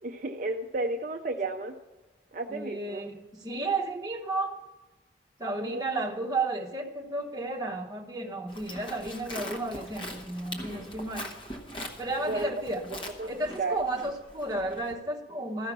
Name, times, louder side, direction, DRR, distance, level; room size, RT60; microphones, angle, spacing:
voice 1, 0.0-1.7 2.3-3.0 5.6-6.1 12.2-12.5 13.2-13.3 13.6-13.8, right 2 dB, 45° right, 3 dB, 0.5 m, -32 dB
voice 2, 2.5-4.6 5.4-11.3 12.0-12.8 13.3-15.7, right 2 dB, 20° right, 0 dB, 1.1 m, -33 dB
Livestock farm animals working animals, 8.5-14.9, equal, 25° left, 1.1 m, -42 dB
14.0 x 5.7 x 6.0 m, 1.2 s
head